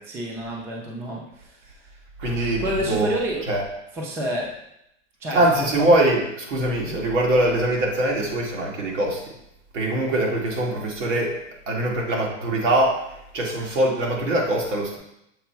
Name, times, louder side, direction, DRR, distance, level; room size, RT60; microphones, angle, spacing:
voice 1, 0.1-1.9 2.6-3.5 3.9-4.5 5.2-5.9 6.8-7.0, right 1 dB, 5° right, -1 dB, 0.4 m, -29 dB
voice 2, 2.2-3.1 3.5-3.6 5.3-9.3 9.7-11.4 11.7-15.0, right 1 dB, 90° right, -1 dB, 2.2 m, -22 dB
7.0 x 3.8 x 4.5 m, 0.80 s
supercardioid pair, 170°, 36 cm